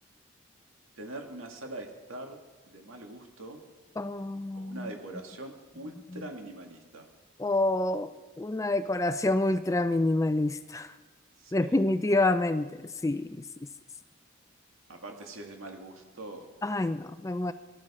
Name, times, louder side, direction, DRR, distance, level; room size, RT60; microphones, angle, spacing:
voice 1, 1.0-2.4 2.7-3.6 4.5-7.1 11.4-11.8 14.9-16.5, right 1 dB, 85° right, 2 dB, 2.1 m, -43 dB
voice 2, 4.0-4.9 6.1-6.2 7.4-8.1 8.4-11.0 11.5-13.4 16.6-17.5, left 2 dB, 15° left, 12 dB, 0.3 m, -27 dB
18.0 x 12.5 x 4.3 m, 1.2 s
head